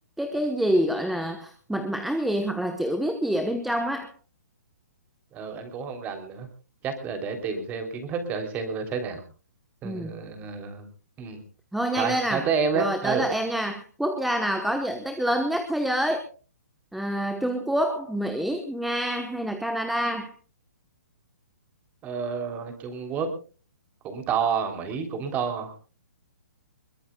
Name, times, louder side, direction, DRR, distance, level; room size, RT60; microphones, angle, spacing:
voice 1, 0.2-4.1 9.8-10.1 11.7-12.5 12.7-16.2 16.9-20.3, equal, ahead, 6 dB, 1.0 m, -27 dB
voice 2, 5.3-6.5 6.8-9.2 9.8-10.9 11.2-11.4 12.0-13.3 22.0-23.3 24.0-25.7, right 6 dB, 20° right, 7 dB, 3.3 m, -29 dB
22.0 x 21.5 x 2.3 m, 0.36 s
hypercardioid pair, 155°, 9 cm